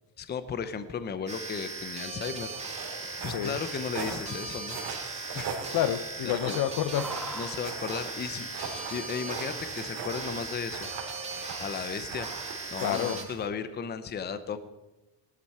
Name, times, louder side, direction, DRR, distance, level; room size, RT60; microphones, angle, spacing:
voice 1, 0.2-2.5 3.2-4.8 5.3-5.5 6.2-6.6 7.3-11.1 11.6-14.6, left 6 dB, 25° left, 11 dB, 0.7 m, -35 dB
sound 1, 1.3-13.2, right 3 dB, 15° right, 2.0 m, -39 dB
sound 2, 2.5-13.5, right 6 dB, 65° right, 3.3 m, -41 dB
voice 2, 5.7-7.1 12.8-13.3, left 11 dB, 55° left, 13 dB, 0.8 m, -29 dB
sound 3, 6.3-12.4, equal, ahead, 1.5 m, -48 dB
19.5 x 12.5 x 4.3 m, 1.0 s
cardioid pair, 165°, 43 cm